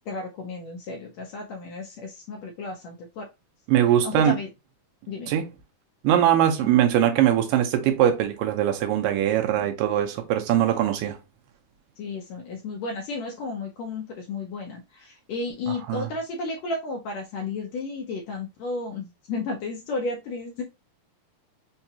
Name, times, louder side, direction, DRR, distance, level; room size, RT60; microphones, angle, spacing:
voice 1, 0.1-3.2 4.0-4.5 5.1-5.3 9.5-9.7 12.0-20.6, left 3 dB, 75° left, 1.6 m, -33 dB
voice 2, 3.7-4.4 5.3-5.5 6.0-11.2 15.7-16.1, right 11 dB, 85° right, 2.4 m, -21 dB
5.7 x 2.3 x 2.8 m
omnidirectional pair, 3.8 m